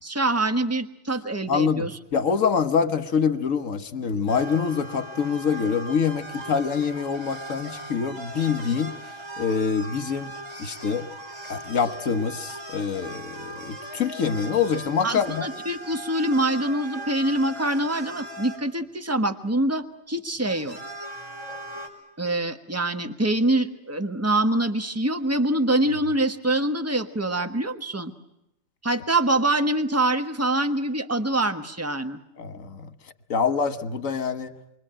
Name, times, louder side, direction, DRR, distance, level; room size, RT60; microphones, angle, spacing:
voice 1, 0.0-1.9 15.0-20.8 22.2-28.1 28.8-32.2, right 1 dB, 10° right, 8 dB, 1.3 m, -25 dB
voice 2, 1.5-8.9 9.4-10.3 10.6-11.1 11.5-15.5 32.4-32.9 33.3-34.5, left 6 dB, 80° left, 11 dB, 1.7 m, -25 dB
sound 1, 4.3-18.6 19.6-19.7 20.3-21.9, right 1 dB, 70° right, 5.5 m, -39 dB
28.0 x 24.0 x 8.9 m, 0.87 s
omnidirectional pair, 1.4 m